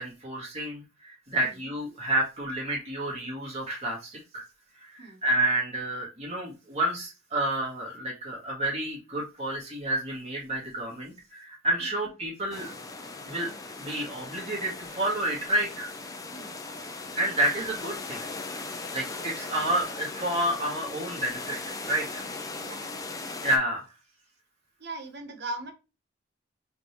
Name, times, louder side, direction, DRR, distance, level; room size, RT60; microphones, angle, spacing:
voice 1, 0.0-4.4 4.8-12.7 13.3-13.5 13.8-15.9 17.1-18.2 18.5-21.6 21.8-22.2 23.4-23.8, right 1 dB, 35° right, -4 dB, 1.9 m, -30 dB
sound 1, 12.5-23.6, left 3 dB, 20° left, 0.6 m, -38 dB
voice 2, 22.6-22.9 24.8-25.7, right 2 dB, 55° right, 6 dB, 1.0 m, -39 dB
4.2 x 3.4 x 3.0 m, 0.29 s
head